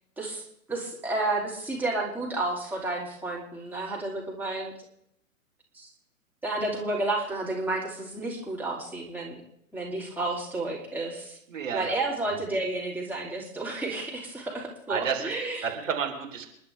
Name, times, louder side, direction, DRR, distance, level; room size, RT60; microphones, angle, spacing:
voice 1, 0.7-4.7 5.7-5.9 6.4-9.4 9.7-11.4 11.7-15.7, right 2 dB, 5° right, -3 dB, 2.8 m, -31 dB
voice 2, 11.5-12.0 14.9-15.3 15.6-16.5, right 7 dB, 65° right, 2 dB, 3.7 m, -30 dB
28.0 x 11.5 x 3.4 m, 0.73 s
figure-of-eight pair, 110°, 42 cm